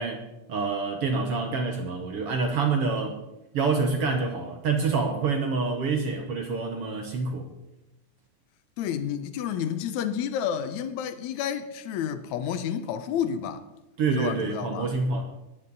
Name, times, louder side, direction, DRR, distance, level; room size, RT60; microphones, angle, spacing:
voice 1, 0.0-3.2 3.5-7.5 14.0-15.2, right 4 dB, 70° right, 1.4 m, -27 dB
voice 2, 8.8-13.6 14.2-14.9, left 8 dB, 75° left, 1.8 m, -30 dB
19.0 x 9.1 x 4.0 m
omnidirectional pair, 4.0 m